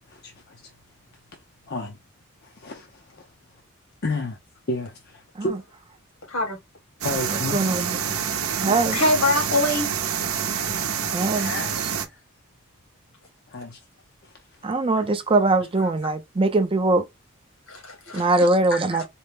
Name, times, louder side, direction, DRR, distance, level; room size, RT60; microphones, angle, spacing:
voice 1, 0.1-0.6 1.7-2.0 2.6-3.3 4.0-4.4 4.7-5.6 7.0-7.7 11.3-12.1 13.5-13.8 14.2-14.3 14.9-15.0 18.7-19.0, left 2 dB, 45° left, 0.6 m, -32 dB
sound 1, 7.0-12.1, right 7 dB, 85° right, 0.7 m, -27 dB
voice 2, 7.3-9.0 11.1-11.5 14.6-17.0 18.1-19.0, right 2 dB, 25° right, 0.4 m, -22 dB
voice 3, 8.6-9.9 17.7-18.5 19.0-19.1, left 2 dB, 75° left, 1.9 m, -24 dB
4.2 x 2.0 x 3.4 m
head